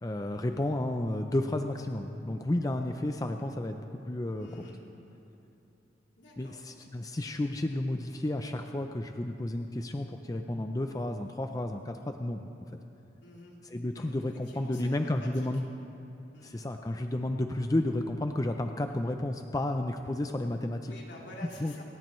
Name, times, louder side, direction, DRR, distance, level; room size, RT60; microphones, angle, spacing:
voice 1, 0.0-4.5 6.4-12.5 13.7-15.6 16.4-20.9 21.6-21.8, left 1 dB, 20° left, 5 dB, 0.5 m, -32 dB
voice 2, 4.4-4.8 6.2-6.6 13.2-13.5 13.9-15.5 16.3-16.5 20.9-21.8, left 1 dB, 75° left, -3 dB, 3.1 m, -49 dB
28.5 x 13.5 x 3.2 m, 2.8 s
head